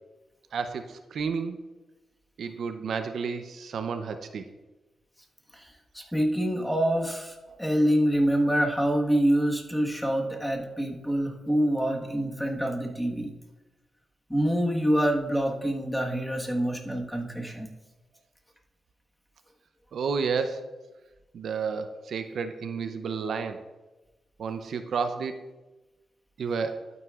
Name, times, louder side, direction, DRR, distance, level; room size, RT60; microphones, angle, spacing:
voice 1, 0.5-1.6 2.4-4.5 7.5-7.6 19.9-20.7 21.3-23.7 24.4-25.4 26.4-26.8, right 5 dB, 70° right, 8 dB, 0.6 m, -31 dB
voice 2, 5.9-13.3 14.3-17.7, equal, 5° left, 1 dB, 1.4 m, -26 dB
12.0 x 9.2 x 2.4 m, 1.1 s
cardioid pair, 90°, 0 cm